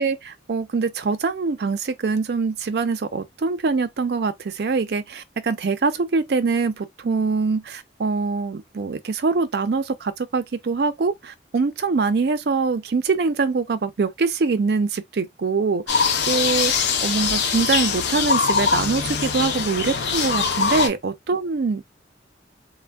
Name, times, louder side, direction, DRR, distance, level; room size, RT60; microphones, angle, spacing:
voice 1, 0.0-21.8, right 4 dB, 60° right, 0.4 m, -24 dB
sound 1, 15.9-20.9, left 5 dB, 70° left, 0.5 m, -22 dB
3.3 x 2.1 x 2.2 m
head